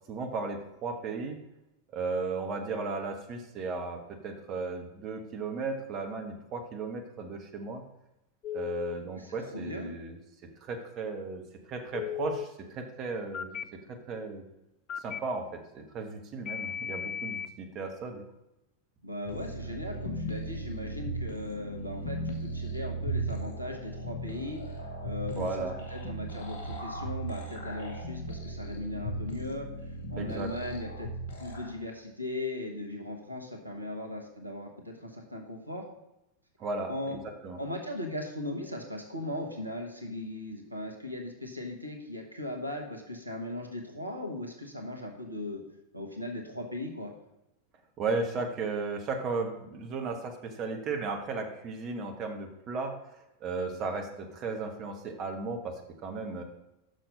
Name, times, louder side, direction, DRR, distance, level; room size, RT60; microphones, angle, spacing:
voice 1, 0.1-1.4 1.9-7.8 8.5-10.2 10.6-11.4 11.7-13.6 13.9-14.4 15.0-18.2 25.3-25.7 30.2-30.5 36.6-37.6 48.0-56.4, right 4 dB, 35° right, 3 dB, 1.2 m, -35 dB
Telephone, 8.4-8.9 11.9-12.4 13.3-13.6 14.9-15.2 16.5-17.5, left 9 dB, 35° left, 0.4 m, -35 dB
voice 2, 9.1-9.9 19.0-24.6 25.0-29.7 30.1-31.1 31.4-35.8 36.9-37.2 37.6-45.6 45.9-47.1, left 1 dB, 85° right, 2 dB, 1.1 m, -38 dB
sound 1, 19.2-31.7, right 2 dB, 60° left, 1.8 m, -37 dB
6.4 x 6.0 x 5.4 m, 0.89 s
figure-of-eight pair, 90°, 0 cm